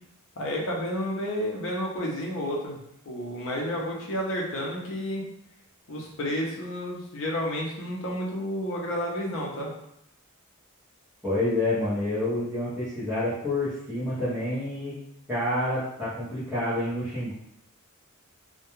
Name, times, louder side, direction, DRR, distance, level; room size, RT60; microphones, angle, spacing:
voice 1, 0.4-2.8 3.1-5.2 5.9-9.7, equal, 60° left, -2 dB, 0.6 m, -31 dB
voice 2, 11.2-15.0 15.3-17.3, left 1 dB, 5° right, -15 dB, 0.7 m, -28 dB
2.3 x 2.2 x 2.9 m, 0.78 s
head